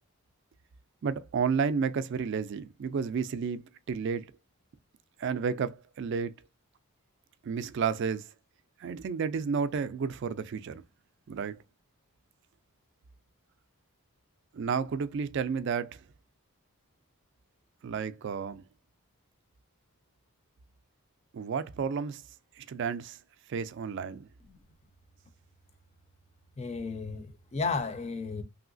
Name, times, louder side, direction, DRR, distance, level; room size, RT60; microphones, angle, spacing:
voice 1, 1.0-3.6 3.9-4.3 5.2-6.3 7.4-8.3 8.8-10.8 11.3-11.5 14.5-16.0 17.8-18.6 21.3-22.2 22.6-23.2 23.5-24.3, right 6 dB, 50° right, 0.3 m, -31 dB
voice 2, 26.6-28.4, left 4 dB, 30° left, 0.4 m, -33 dB
3.0 x 2.7 x 2.5 m
head